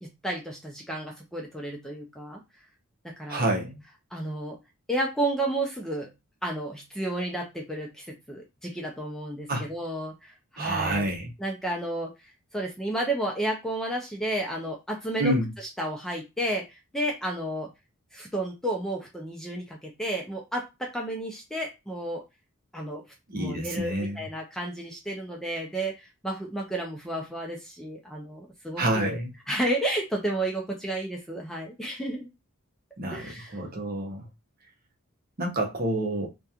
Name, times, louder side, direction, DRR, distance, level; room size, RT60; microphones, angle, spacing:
voice 1, 0.0-2.4 3.0-3.5 4.1-4.6 4.9-6.1 6.4-11.0 11.4-17.7 18.1-22.2 22.7-23.0 23.4-29.2 29.5-32.3 33.1-33.6, right 1 dB, ahead, 0.4 m, -32 dB
voice 2, 3.3-3.8 9.5-9.6 10.6-11.3 15.2-15.5 23.3-24.3 28.8-29.3 33.0-34.3 35.4-36.3, right 1 dB, 45° right, 0.7 m, -28 dB
2.8 x 2.2 x 2.3 m
head